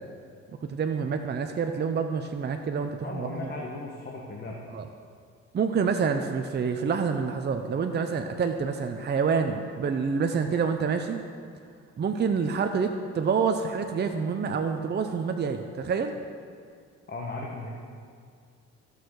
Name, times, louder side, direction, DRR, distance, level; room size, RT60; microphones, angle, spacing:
voice 1, 0.6-3.3 4.7-4.8 5.5-11.2 12.0-16.1, right 5 dB, 35° right, 6 dB, 0.6 m, -27 dB
voice 2, 3.0-4.6 17.1-17.7, left 2 dB, 35° left, -2 dB, 1.4 m, -36 dB
15.5 x 6.5 x 4.8 m, 2.2 s
cardioid pair, 90°, 30 cm